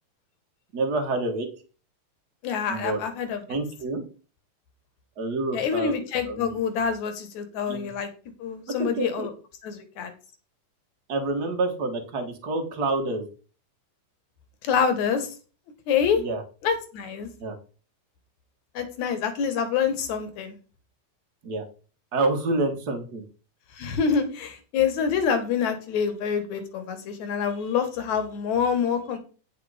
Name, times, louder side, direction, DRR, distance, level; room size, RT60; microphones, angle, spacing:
voice 1, 0.7-1.5 2.7-3.0 3.5-4.0 5.2-5.9 6.3-6.6 7.7-7.9 8.8-9.3 11.1-13.3 16.2-16.4 17.4-17.6 21.4-21.6 22.1-23.2, right 2 dB, 45° right, 5 dB, 1.4 m, -28 dB
voice 2, 2.4-3.4 5.5-8.1 8.4-9.3 9.6-10.1 14.6-15.3 15.9-16.2 16.6-17.3 18.7-20.6 23.8-29.2, left 6 dB, 70° left, 8 dB, 2.6 m, -26 dB
9.6 x 5.2 x 4.9 m, 0.37 s
omnidirectional pair, 3.5 m